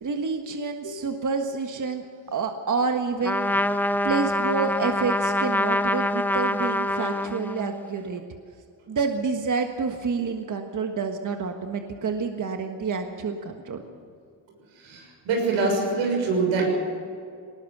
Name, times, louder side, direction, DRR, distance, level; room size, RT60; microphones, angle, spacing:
voice 1, 0.0-3.5 4.0-8.2 8.9-13.8, right 4 dB, 40° right, 5 dB, 1.6 m, -28 dB
Trumpet, 3.2-7.8, left 1 dB, 5° left, 0.7 m, -25 dB
voice 2, 14.8-16.6, right 3 dB, 90° right, 1 dB, 6.6 m, -24 dB
19.5 x 19.0 x 6.8 m, 2.3 s
cardioid pair, 95°, 46 cm